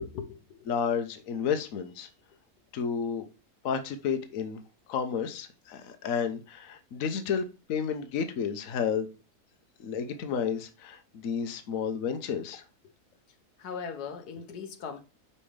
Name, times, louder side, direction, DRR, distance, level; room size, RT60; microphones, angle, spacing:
voice 1, 0.0-0.7 13.6-15.0, left 6 dB, 80° left, 1.4 m, -39 dB
voice 2, 0.7-2.1 2.7-3.3 3.6-4.6 4.9-9.1 9.8-12.6, left 7 dB, 60° left, 1.2 m, -31 dB
5.5 x 5.4 x 3.2 m
omnidirectional pair, 1.7 m